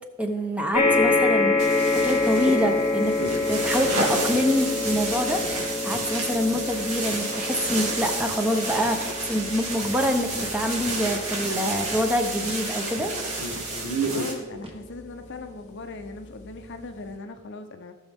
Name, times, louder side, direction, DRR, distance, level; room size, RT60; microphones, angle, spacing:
voice 1, 0.2-3.1 3.5-5.4 5.8-13.1, equal, 5° right, 4 dB, 0.8 m, -26 dB
sound 1, 0.7-15.3 16.0-16.1 16.4-16.5, left 3 dB, 30° left, 1.1 m, -27 dB
sound 2, 1.6-14.3, right 2 dB, 75° right, 2.5 m, -30 dB
sound 3, 2.7-2.9 3.2-3.4 3.8-4.0 4.3-4.5 4.8-5.1 5.4-5.5 5.9-6.1 6.5-6.7 7.0-7.2 7.6-7.8 8.2-8.3 8.8-9.0 9.3-9.5 9.8-10.0 10.3-10.5 10.9-11.0 11.4-11.5 11.9-12.1 12.4-12.6 13.0-13.1 13.5-13.6 14.0-14.2 14.6-14.7, equal, 25° right, 1.2 m, -41 dB
voice 2, 14.1-17.9, left 3 dB, 50° left, 7 dB, 0.7 m, -39 dB
18.0 x 6.3 x 3.5 m, 1.4 s
head